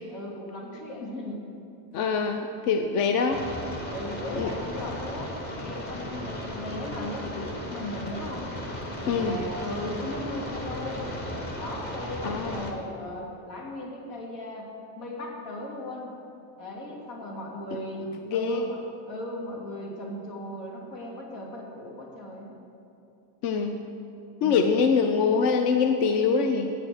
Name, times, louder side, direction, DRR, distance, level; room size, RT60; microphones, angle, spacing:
voice 1, 0.1-1.4 2.5-2.9 3.9-8.5 9.0-11.1 11.6-14.7 15.0-16.1 16.6-22.6 24.4-24.9, left 1 dB, 90° left, -2 dB, 2.7 m, -37 dB
voice 2, 1.9-3.4 4.4-4.5 9.1-9.4 12.2-12.8 18.3-18.6 23.4-23.8 24.4-26.7, left 5 dB, 55° left, 5 dB, 0.7 m, -24 dB
sound 1, 3.3-12.7, equal, 20° left, 0.8 m, -36 dB
8.8 x 6.9 x 7.7 m, 2.7 s
cardioid pair, 175°, 46 cm